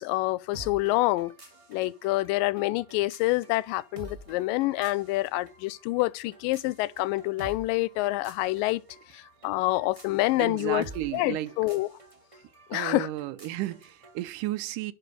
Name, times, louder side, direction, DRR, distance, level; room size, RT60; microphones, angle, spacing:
voice 1, 0.0-1.3 1.7-8.8 9.1-10.9 11.1-11.9 12.7-13.1, left 19 dB, 90° left, 2.3 m, -27 dB
sound 1, 0.5-14.2, right 1 dB, 20° right, 0.9 m, -50 dB
voice 2, 10.4-11.5 12.7-14.9, right 15 dB, 80° right, 2.2 m, -33 dB
10.0 x 3.8 x 6.2 m
omnidirectional pair, 3.9 m